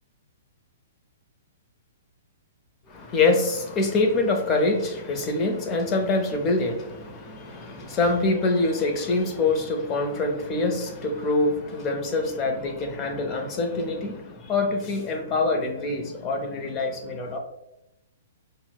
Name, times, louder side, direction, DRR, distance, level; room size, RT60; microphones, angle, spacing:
voice 1, 2.9-17.4, left 3 dB, 30° left, 4 dB, 0.6 m, -25 dB
5.6 x 2.0 x 2.2 m, 0.90 s
hypercardioid pair, 130°, 0 cm